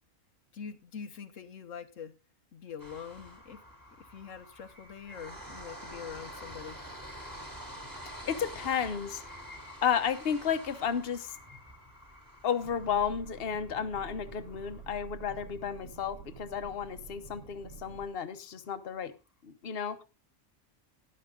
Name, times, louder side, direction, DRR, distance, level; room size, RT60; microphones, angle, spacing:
voice 1, 0.5-2.1 2.5-3.6 4.0-6.8, left 7 dB, 75° left, 9 dB, 1.3 m, -44 dB
sound 1, 2.8-16.9 17.3-17.4 17.7-17.8, equal, 15° right, 2.3 m, -48 dB
voice 2, 7.9-9.2 9.8-11.4 12.4-19.1 19.4-20.0, left 7 dB, 50° left, 9 dB, 1.2 m, -32 dB
sound 2, 12.6-18.1, right 6 dB, 80° right, 1.6 m, -48 dB
12.0 x 11.0 x 3.7 m, 0.28 s
omnidirectional pair, 1.3 m